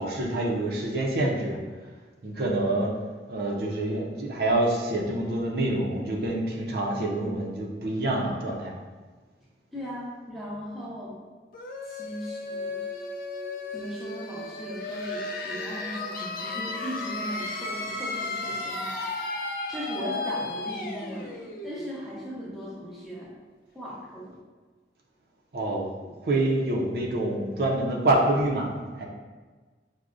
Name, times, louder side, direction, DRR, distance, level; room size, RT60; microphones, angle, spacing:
voice 1, 0.0-1.6 2.2-2.9 3.3-8.7 25.5-28.7 29.0-29.1, right 1 dB, 60° right, -2 dB, 0.5 m, -26 dB
voice 2, 9.7-11.2 11.9-12.8 13.7-19.0 19.7-21.3 21.6-23.3 23.7-24.4, equal, ahead, -7 dB, 0.6 m, -38 dB
sound 1, 11.5-23.1, left 2 dB, 50° left, 0.4 m, -34 dB
6.0 x 2.1 x 2.5 m, 1.4 s
head